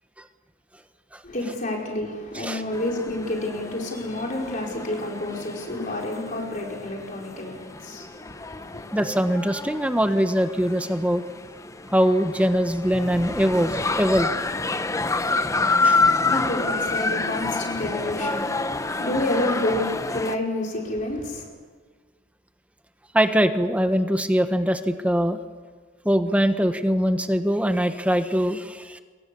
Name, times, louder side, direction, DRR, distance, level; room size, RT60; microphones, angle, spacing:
voice 1, 1.2-8.9 15.9-21.5, left 1 dB, 45° left, -1 dB, 4.9 m, -29 dB
sound 1, 2.7-20.4, left 3 dB, 15° left, 0.8 m, -28 dB
voice 2, 8.9-11.2 11.9-14.3 15.8-16.0 23.1-25.4 26.0-29.0, equal, 5° right, 8 dB, 1.2 m, -22 dB
28.0 x 23.0 x 7.1 m, 1.5 s
head